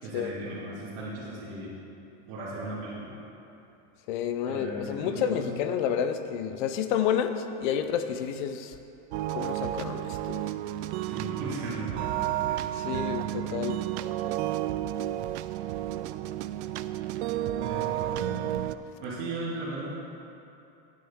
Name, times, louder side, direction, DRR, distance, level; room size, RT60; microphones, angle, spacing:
voice 1, 0.0-1.7 2.3-3.2 4.4-5.5 11.0-12.6 17.6-18.4 19.0-19.9, right 2 dB, 50° right, -9 dB, 2.2 m, -37 dB
voice 2, 4.1-8.8 9.3-10.5 12.8-13.8, left 8 dB, 45° left, 9 dB, 0.5 m, -30 dB
sound 1, 9.1-18.8, right 13 dB, 75° right, 0.5 m, -31 dB
12.5 x 9.4 x 3.5 m, 2.8 s
supercardioid pair, 180°, 34 cm